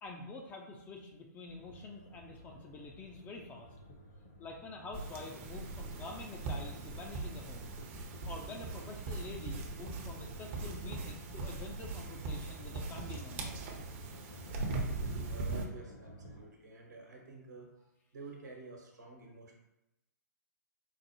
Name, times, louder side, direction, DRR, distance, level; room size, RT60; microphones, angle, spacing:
voice 1, 0.0-3.7 4.4-7.7 8.3-13.6, left 3 dB, 20° left, 1 dB, 0.4 m, -47 dB
sound 1, 1.5-16.5, equal, 45° left, 0.8 m, -54 dB
sound 2, 4.9-15.7, right 3 dB, 40° right, 0.6 m, -40 dB
voice 2, 15.2-17.7 18.1-19.6, right 3 dB, 80° right, 0 dB, 1.0 m, -50 dB
4.6 x 2.0 x 3.0 m, 0.91 s
figure-of-eight pair, 120°, 10 cm